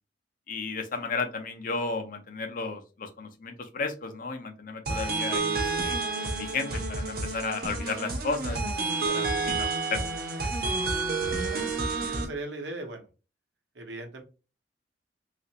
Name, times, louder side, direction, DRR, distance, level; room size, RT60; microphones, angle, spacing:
voice 1, 0.5-6.0 6.4-10.2, left 4 dB, 50° left, 5 dB, 0.5 m, -34 dB
sound 1, 4.9-12.2, right 3 dB, 55° right, 0.6 m, -29 dB
voice 2, 12.1-13.1 13.8-14.2, right 2 dB, 80° right, 4 dB, 0.8 m, -38 dB
3.1 x 2.4 x 2.7 m, 0.32 s
head